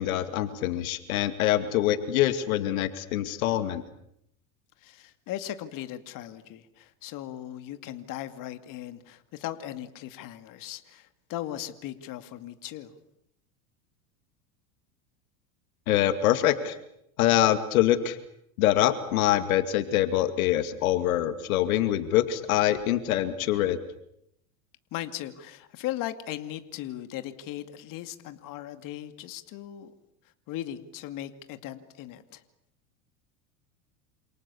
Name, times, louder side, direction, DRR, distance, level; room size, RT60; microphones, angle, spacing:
voice 1, 0.0-3.8 15.9-16.8 17.2-18.2 18.6-23.8, left 12 dB, 80° left, 10 dB, 2.5 m, -24 dB
voice 2, 4.8-12.9 24.9-29.9 30.5-32.4, left 13 dB, 50° left, 9 dB, 2.4 m, -38 dB
28.5 x 28.0 x 7.1 m, 0.78 s
supercardioid pair, 115°, 42 cm